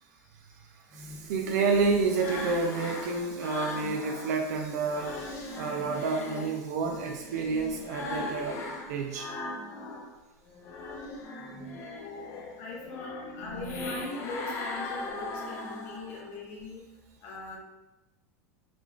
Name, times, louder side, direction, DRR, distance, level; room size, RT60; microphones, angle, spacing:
voice 1, 0.7-9.3, right 4 dB, 75° right, 3 dB, 0.4 m, -30 dB
sound 1, 0.9-4.3 4.7-10.1 10.5-16.3, left 2 dB, 35° left, 0.6 m, -39 dB
voice 2, 12.6-16.8 17.2-17.6, left 3 dB, 60° left, -4 dB, 1.1 m, -41 dB
5.0 x 2.3 x 2.3 m, 0.98 s
supercardioid pair, 125°, 9 cm